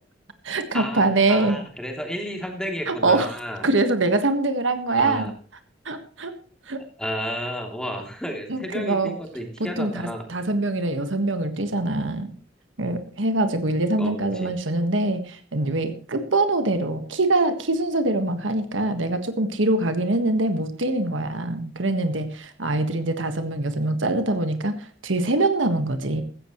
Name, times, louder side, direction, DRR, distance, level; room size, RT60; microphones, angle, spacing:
voice 1, 0.4-1.6 2.9-3.3 3.6-5.3 5.8-6.3 6.7-6.8 8.5-9.1 9.6-12.3 12.8-26.2, right 2 dB, 80° right, 8 dB, 1.6 m, -24 dB
voice 2, 1.3-3.7 4.9-5.3 7.0-10.2 14.0-14.5, equal, 5° left, 2 dB, 3.0 m, -32 dB
15.5 x 14.5 x 3.2 m, 0.40 s
head